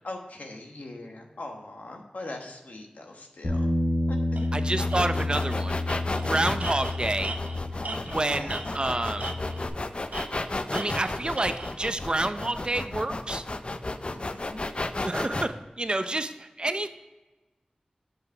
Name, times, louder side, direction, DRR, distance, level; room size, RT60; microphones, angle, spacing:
voice 1, 0.0-3.7 4.1-4.5 6.1-6.6 7.8-8.6 14.1-14.7 16.0-16.1, left 2 dB, 85° left, 2 dB, 1.2 m, -41 dB
Bass guitar, 3.4-8.2 8.5-9.7, left 2 dB, 70° left, 1.8 m, -30 dB
Tools, 4.4-4.5 4.9-5.0 5.4-5.6 5.9-8.9 9.2-9.7 10.1-11.7, right 3 dB, 85° right, 0.8 m, -38 dB
voice 2, 4.5-5.8 6.3-7.4 8.1-9.3 10.7-13.5 15.0-16.9, right 2 dB, 40° right, 10 dB, 0.5 m, -29 dB
sound 1, 4.8-15.5, left 2 dB, 45° left, 0.5 m, -33 dB
7.8 x 5.6 x 4.4 m, 1.1 s
wide cardioid pair, 65°, 3 cm